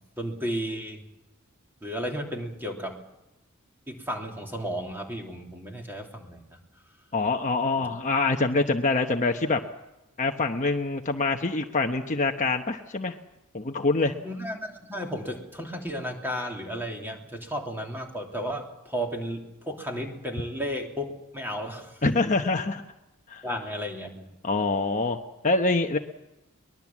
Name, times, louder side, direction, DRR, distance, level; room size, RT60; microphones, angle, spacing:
voice 1, 0.2-1.0 1.8-3.0 3.9-6.6 7.8-7.9 14.0-22.0 23.4-24.3, equal, 10° right, 1 dB, 3.2 m, -34 dB
voice 2, 7.1-9.6 10.2-13.2 13.5-14.1 22.0-22.8 23.3-23.4 24.4-25.2 25.4-26.0, left 3 dB, 35° left, 4 dB, 1.0 m, -25 dB
23.0 x 20.5 x 7.4 m, 0.95 s
head